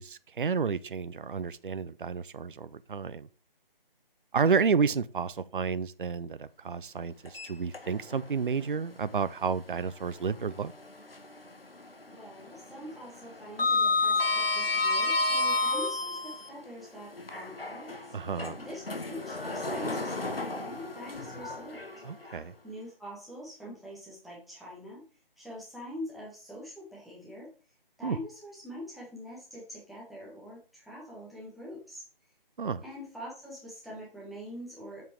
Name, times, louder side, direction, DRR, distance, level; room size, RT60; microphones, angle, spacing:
voice 1, 0.0-3.3 4.3-10.7 18.1-18.6 22.0-22.5 28.0-28.2 32.6-32.8, right 5 dB, 60° right, 0.6 m, -30 dB
Sliding door, 7.3-8.2 8.6-8.7 10.4-11.5 11.8-12.1 12.4-16.5 17.2-22.4, left 3 dB, 80° left, 1.6 m, -30 dB
voice 2, 12.0-18.1 18.6-21.8 22.6-25.0 25.4-27.5 28.0-32.0 32.8-35.1, equal, ahead, 1.2 m, -44 dB
7.4 x 5.8 x 4.5 m
figure-of-eight pair, 155°, 29 cm